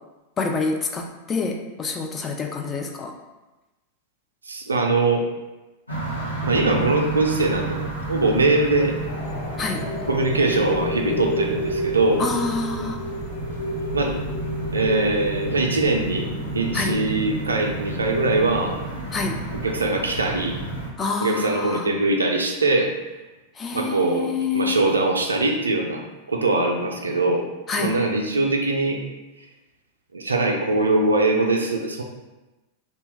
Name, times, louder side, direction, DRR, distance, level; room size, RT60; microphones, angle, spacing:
voice 1, 0.4-3.1 9.6-9.8 12.2-13.0 16.7-17.0 19.1-19.4 21.0-21.9 23.6-24.8 27.7-27.9, left 4 dB, 25° left, 3 dB, 0.3 m, -27 dB
voice 2, 4.5-5.3 6.4-8.9 10.1-12.2 13.9-14.1 14.7-16.3 16.5-18.8 19.6-20.6 21.2-22.9 23.7-26.0 26.3-27.5 27.8-29.0 30.1-32.0, right 2 dB, 75° right, 3 dB, 0.3 m, -22 dB
sound 1, 5.9-20.9, right 2 dB, 85° left, 0.6 m, -31 dB
sound 2, 9.1-20.7, equal, 60° left, 1.1 m, -32 dB
2.6 x 2.2 x 3.1 m, 1.1 s
figure-of-eight pair, 90°, 0 cm